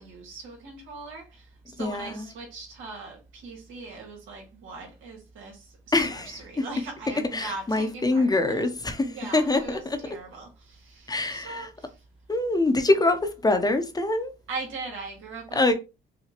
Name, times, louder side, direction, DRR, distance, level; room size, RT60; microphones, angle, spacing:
voice 1, 0.0-1.4 1.7-8.6 9.0-11.9 14.5-15.7, right 3 dB, 90° right, 1.6 m, -40 dB
voice 2, 1.8-2.2 5.9-6.4 7.3-10.0 11.1-11.7 12.3-14.3 15.5-15.7, left 2 dB, 20° left, 0.7 m, -24 dB
5.8 x 2.2 x 2.9 m
cardioid pair, 90°, 20 cm